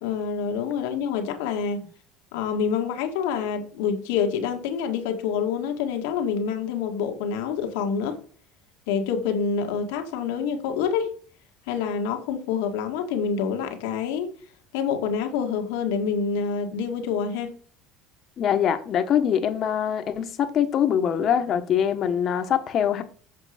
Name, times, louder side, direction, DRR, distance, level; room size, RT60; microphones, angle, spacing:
voice 1, 0.0-1.9 2.3-8.2 8.9-11.1 11.7-14.3 14.7-17.5, left 6 dB, 90° left, 1.8 m, -27 dB
voice 2, 18.4-23.0, left 9 dB, 45° left, 1.3 m, -23 dB
7.8 x 5.4 x 5.1 m
cardioid pair, 120°, 0 cm